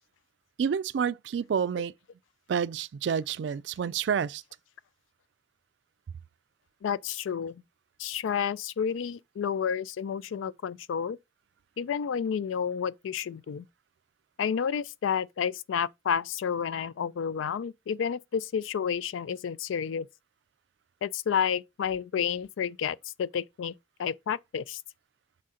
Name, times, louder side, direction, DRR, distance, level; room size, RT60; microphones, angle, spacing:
voice 1, 0.6-1.9 2.5-4.4, right 7 dB, 65° right, 0.3 m, -29 dB
voice 2, 6.8-7.6 8.0-11.2 11.8-13.7 14.4-20.1 21.0-23.7 24.0-24.8, left 7 dB, 90° left, 0.3 m, -30 dB
6.3 x 3.7 x 4.1 m
head